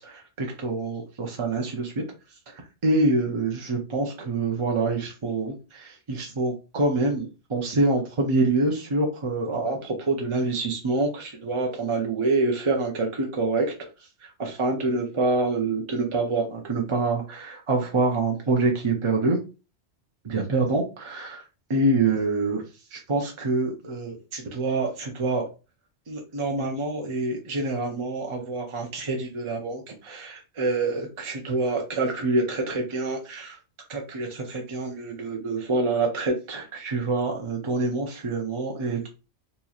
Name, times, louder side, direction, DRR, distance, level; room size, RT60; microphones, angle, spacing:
voice 1, 0.0-2.0 2.3-19.4 20.2-21.4 21.7-22.6 22.9-25.4 26.1-33.5 33.9-39.1, right 3 dB, 40° right, 0 dB, 0.5 m, -26 dB
4.0 x 2.9 x 2.4 m, 0.32 s
omnidirectional pair, 1.2 m